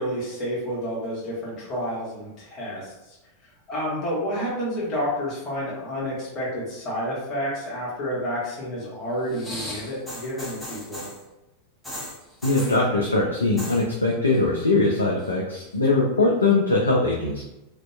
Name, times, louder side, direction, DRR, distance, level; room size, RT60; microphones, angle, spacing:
voice 1, 0.0-3.2 3.7-11.1, equal, 30° left, -7 dB, 1.1 m, -30 dB
sound 1, 9.3-11.2 11.8-12.8 13.4-13.8 14.1-14.6 15.0-15.7 16.5-16.6, left 1 dB, 5° left, 0.7 m, -37 dB
voice 2, 12.4-17.5, left 2 dB, 75° left, -2 dB, 0.3 m, -21 dB
2.6 x 2.0 x 2.3 m, 0.93 s
figure-of-eight pair, 90°, 0 cm